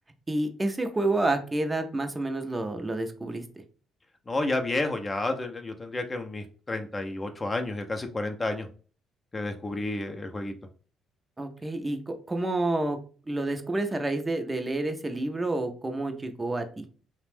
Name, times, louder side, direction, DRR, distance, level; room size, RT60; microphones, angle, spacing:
voice 1, 0.3-3.4 11.4-13.0 13.3-16.8, right 2 dB, 25° right, 6 dB, 0.5 m, -29 dB
voice 2, 4.3-8.7 9.3-10.5, left 2 dB, 25° left, 5 dB, 0.5 m, -31 dB
2.4 x 2.0 x 3.3 m, 0.39 s
hypercardioid pair, 50°, 0 cm